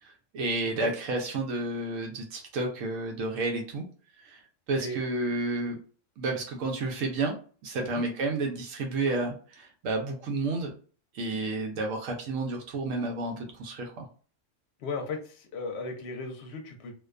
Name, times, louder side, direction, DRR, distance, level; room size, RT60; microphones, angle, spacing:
voice 1, 0.0-3.9 4.2-4.4 4.7-5.8 6.2-7.3 7.6-10.7 11.1-14.1, right 2 dB, 90° right, 1 dB, 1.0 m, -31 dB
voice 2, 14.8-16.9, left 3 dB, 60° left, 4 dB, 0.8 m, -36 dB
2.5 x 2.2 x 2.4 m, 0.40 s
omnidirectional pair, 1.3 m